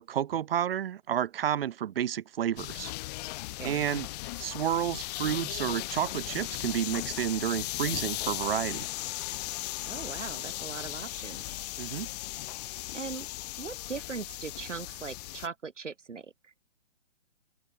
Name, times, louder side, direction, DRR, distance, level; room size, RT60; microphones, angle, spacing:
voice 1, 0.0-2.9 3.6-4.1 4.4-8.9 11.8-12.1, right 10 dB, 50° right, 4.4 m, -30 dB
sound 1, 2.6-15.5, left 19 dB, 35° left, 3.2 m, -37 dB
voice 2, 9.8-11.6 12.9-13.3 13.6-16.5, right 5 dB, 75° right, 7.5 m, -40 dB
hypercardioid pair, 140°, 37 cm